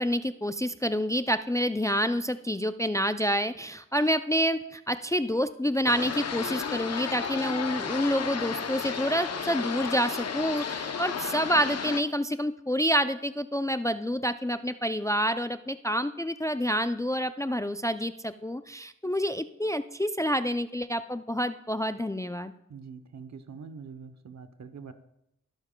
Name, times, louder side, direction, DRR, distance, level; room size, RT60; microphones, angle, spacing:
voice 1, 0.0-22.5, equal, 10° left, 11 dB, 0.4 m, -28 dB
sound 1, 5.9-12.0, left 6 dB, 55° left, 0.7 m, -33 dB
voice 2, 22.7-24.9, right 5 dB, 65° right, 10 dB, 0.9 m, -44 dB
21.5 x 7.2 x 2.2 m, 0.80 s
cardioid pair, 55°, 30 cm